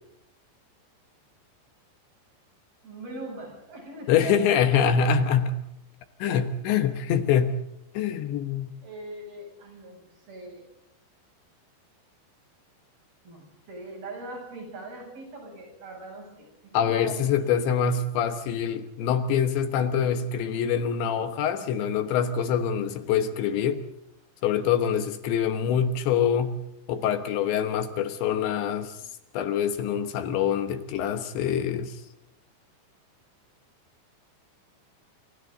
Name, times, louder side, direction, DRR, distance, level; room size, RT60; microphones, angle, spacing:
voice 1, 2.8-4.9 8.0-8.2 8.8-10.0 10.3-10.7 13.2-16.5 16.8-17.5, right 2 dB, 50° right, 1 dB, 9.5 m, -41 dB
voice 2, 4.1-5.6 6.2-7.5 7.9-8.7 16.7-23.8 24.4-26.6 26.9-29.0 29.3-32.0, left 7 dB, 75° left, 9 dB, 3.4 m, -25 dB
28.5 x 28.5 x 4.0 m, 0.81 s
omnidirectional pair, 5.5 m